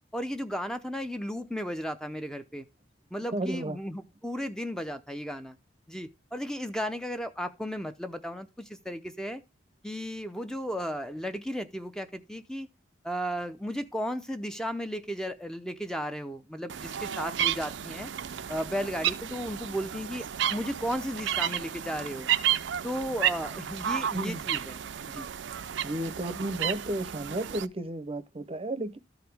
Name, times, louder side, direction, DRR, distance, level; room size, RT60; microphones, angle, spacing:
voice 1, 0.1-2.7 3.1-5.6 5.9-9.4 9.8-12.7 13.0-18.1 18.5-20.3 20.5-22.3 22.8-24.8 25.1-25.3, equal, 5° left, 0.6 m, -34 dB
voice 2, 3.3-3.8 24.1-24.4 25.8-29.0, right 1 dB, 30° right, 0.7 m, -33 dB
sound 1, 16.7-27.6, right 10 dB, 70° right, 0.5 m, -32 dB
13.5 x 4.9 x 3.4 m
head